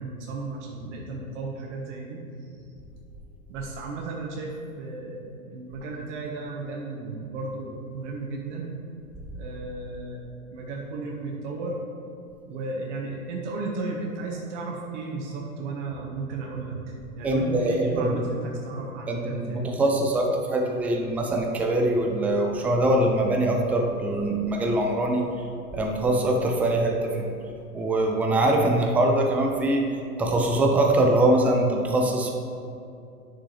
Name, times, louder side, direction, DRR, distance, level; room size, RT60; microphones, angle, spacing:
voice 1, 0.0-2.7 3.5-8.7 9.3-11.8 12.5-19.6, right 3 dB, 55° right, -1 dB, 1.4 m, -34 dB
voice 2, 17.2-18.2 19.1-25.2 25.7-27.3 27.7-29.9 30.2-32.3, right 1 dB, 5° right, 1 dB, 0.3 m, -23 dB
9.5 x 6.3 x 3.2 m, 2.6 s
hypercardioid pair, 100°, 44 cm